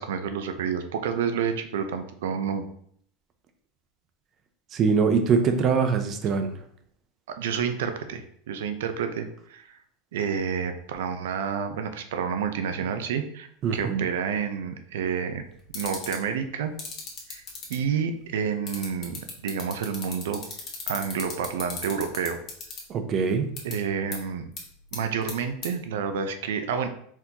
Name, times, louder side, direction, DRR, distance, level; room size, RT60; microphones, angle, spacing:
voice 1, 0.0-2.7 7.3-9.8 10.1-15.4 15.7-16.8 17.3-17.4 17.7-20.4 20.9-22.4 23.6-24.5 24.9-26.9, right 7 dB, 85° right, 8 dB, 0.6 m, -29 dB
voice 2, 4.7-6.5 13.6-14.0 22.9-23.5, right 5 dB, 30° right, 7 dB, 0.6 m, -23 dB
sound 1, 15.7-16.2 16.8-17.7 18.7-22.8 23.6-23.7 24.1-24.2 24.6-24.7 24.9-25.3 25.6-25.7, left 7 dB, 35° left, 1.2 m, -35 dB
4.5 x 3.8 x 2.8 m, 0.64 s
supercardioid pair, 150°, 0 cm